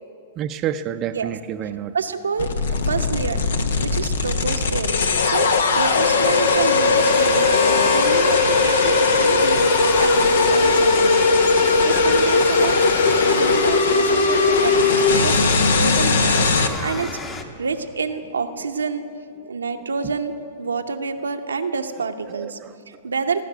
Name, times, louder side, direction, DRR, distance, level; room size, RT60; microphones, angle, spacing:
voice 1, 0.4-1.9 22.3-22.7, right 10 dB, 35° right, 8 dB, 0.5 m, -29 dB
voice 2, 1.9-2.5 2.8-4.9 5.2-11.2 11.6-12.8 13.2-16.5 16.8-17.1 17.6-19.1 19.5-20.3 20.6-22.6 22.9-23.4, right 5 dB, 85° right, 7 dB, 0.7 m, -28 dB
sound 1, 2.4-16.7, left 4 dB, 75° left, 0.9 m, -18 dB
sound 2, 7.0-17.4, left 3 dB, 25° left, 1.1 m, -32 dB
17.0 x 5.9 x 9.3 m, 2.5 s
hypercardioid pair, 115°, 0 cm